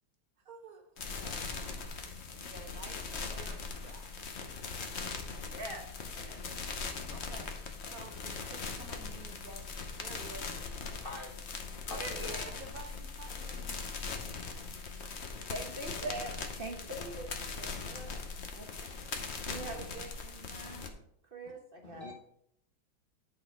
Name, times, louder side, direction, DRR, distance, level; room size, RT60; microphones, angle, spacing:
voice 1, 0.4-4.1 7.1-9.7 10.0-10.6 11.8-13.8, right 3 dB, 55° right, 4 dB, 1.1 m, -51 dB
sound 1, 1.0-20.9, left 4 dB, 50° left, 0.9 m, -40 dB
voice 2, 5.5-6.4 6.7-7.0 7.2-7.4 7.9-8.0 12.0-12.6 15.5-17.3 17.6-18.2 18.5-18.9 19.5-20.9 21.2-22.1, right 2 dB, 40° right, 2 dB, 0.9 m, -44 dB
voice 3, 11.0-11.3 11.8-12.5 21.8-22.1, left 2 dB, 85° left, 1 dB, 0.5 m, -44 dB
10.5 x 4.1 x 4.6 m, 0.73 s
omnidirectional pair, 2.2 m